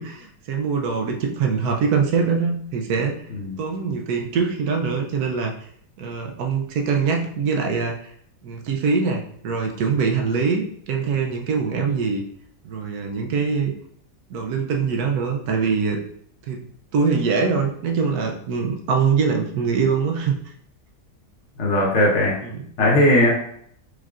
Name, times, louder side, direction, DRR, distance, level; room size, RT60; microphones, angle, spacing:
voice 1, 0.0-3.2 3.6-5.5 6.0-8.1 8.4-12.2 12.6-13.7 14.3-16.0 16.5-16.6 16.9-20.4 22.4-22.6, right 5 dB, 70° right, 2 dB, 1.1 m, -23 dB
voice 2, 21.6-22.4 22.8-23.3, left 1 dB, 50° left, -3 dB, 1.2 m, -17 dB
4.8 x 3.2 x 2.4 m, 0.64 s
omnidirectional pair, 1.7 m